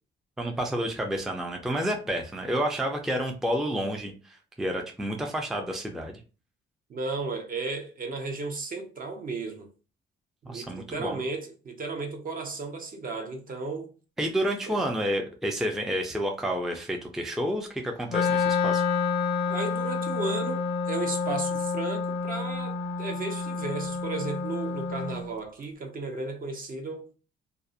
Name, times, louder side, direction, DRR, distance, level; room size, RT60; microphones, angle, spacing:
voice 1, 0.4-6.2 10.5-11.2 14.2-18.8, equal, ahead, 0.4 m, -30 dB
voice 2, 6.9-9.7 10.4-13.9 14.7-14.8 19.5-27.1, right 3 dB, 45° right, 0.7 m, -34 dB
Wind instrument woodwind instrument, 18.1-25.2, left 5 dB, 65° left, 0.5 m, -29 dB
2.4 x 2.0 x 2.6 m
cardioid pair, 90°, 20 cm